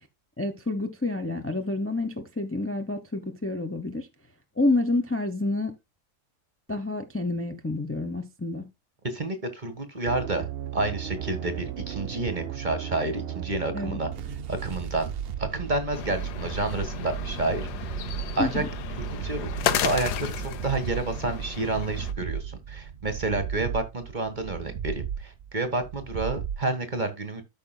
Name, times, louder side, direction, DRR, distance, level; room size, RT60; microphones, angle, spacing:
voice 1, 0.4-4.1 4.6-5.7 6.7-8.7 13.7-14.0 18.4-18.7, left 2 dB, 10° left, 0.9 m, -28 dB
voice 2, 9.0-10.5 10.7-14.1 14.5-15.1 15.4-18.0 18.3-18.6 19.0-27.4, right 2 dB, 30° right, 1.5 m, -30 dB
sound 1, 10.1-26.7, right 8 dB, 70° right, 0.5 m, -35 dB
sound 2, 15.9-22.1, left 10 dB, 85° left, 1.4 m, -33 dB
13.5 x 6.0 x 2.3 m
omnidirectional pair, 1.7 m